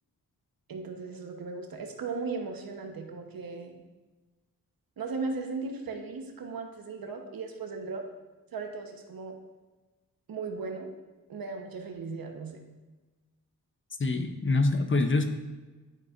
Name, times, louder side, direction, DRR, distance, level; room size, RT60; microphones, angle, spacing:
voice 1, 0.7-3.7 5.0-8.1 8.5-9.4 10.3-10.9 11.3-12.6, right 4 dB, 70° right, 3 dB, 1.1 m, -37 dB
voice 2, 14.0-15.2, left 3 dB, 35° left, 7 dB, 0.8 m, -25 dB
11.0 x 4.2 x 2.5 m, 1.2 s
cardioid pair, 60°, 36 cm